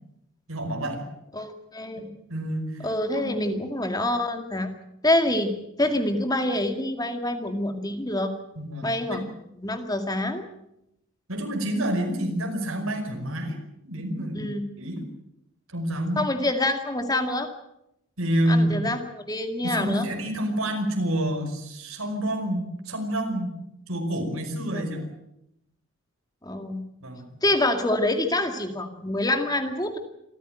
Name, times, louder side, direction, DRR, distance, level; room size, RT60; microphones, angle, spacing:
voice 1, 0.5-1.0 2.0-2.1 2.3-2.9 3.2-3.6 8.6-9.3 11.3-13.6 13.8-14.5 14.8-15.1 15.7-16.2 18.2-18.8 19.6-23.5 23.9-25.1 27.0-27.4, right 1 dB, 80° right, 5 dB, 5.4 m, -28 dB
voice 2, 1.3-2.1 2.8-4.7 5.0-5.5 5.8-8.3 8.8-10.4 14.3-14.7 16.2-17.5 18.5-20.1 24.7-24.8 26.4-26.8 27.4-30.0, left 1 dB, 20° left, 6 dB, 2.1 m, -26 dB
26.5 x 14.5 x 9.1 m, 0.82 s
head